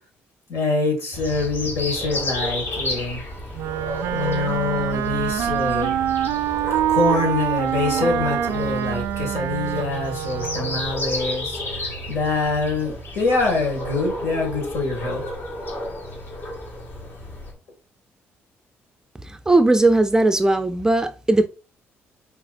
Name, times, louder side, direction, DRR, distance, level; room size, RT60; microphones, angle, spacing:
voice 1, 0.5-3.2 4.1-6.0 6.9-15.2, left 3 dB, 70° left, 2.1 m, -25 dB
sound 1, 1.1-17.5, left 1 dB, 50° left, 1.7 m, -32 dB
Wind instrument woodwind instrument, 3.5-10.9, right 11 dB, 75° right, 0.3 m, -25 dB
voice 2, 19.5-21.5, right 2 dB, 15° right, 0.4 m, -18 dB
5.8 x 3.4 x 2.5 m
cardioid pair, 85°, 5 cm